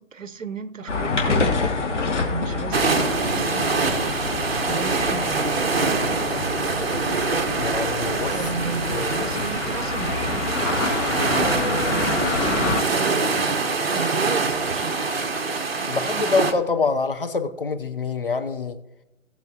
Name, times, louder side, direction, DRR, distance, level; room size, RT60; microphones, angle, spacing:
voice 1, 0.0-1.7 2.2-4.2 4.6-5.7 8.3-10.6 11.3-13.5 13.9-15.0, right 4 dB, 70° right, 0.9 m, -33 dB
sound 1, 0.9-12.8, left 4 dB, 60° left, 2.7 m, -27 dB
sound 2, 2.7-16.5, right 4 dB, 45° right, 1.2 m, -24 dB
voice 2, 7.6-8.4 8.9-9.3 15.9-18.8, left 4 dB, 45° left, 0.7 m, -25 dB
18.5 x 7.3 x 2.9 m
figure-of-eight pair, 160°, 40 cm